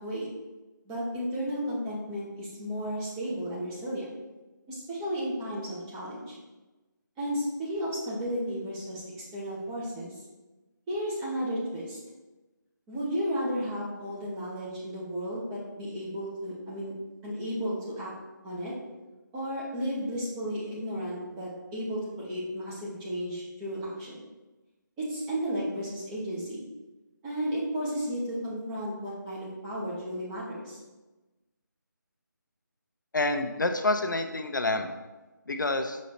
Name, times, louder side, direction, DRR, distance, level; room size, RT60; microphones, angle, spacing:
voice 1, 0.8-4.1 4.7-6.4 7.2-9.0 9.3-10.2 10.9-12.0 12.9-16.9 17.2-18.1 18.4-18.7 19.3-24.2 25.0-26.6 27.2-30.8, equal, 10° right, -7 dB, 1.1 m, -33 dB
voice 2, 33.1-35.0 35.5-36.0, left 2 dB, 70° left, 6 dB, 0.7 m, -28 dB
6.4 x 4.2 x 4.2 m, 1.1 s
figure-of-eight pair, 160°, 11 cm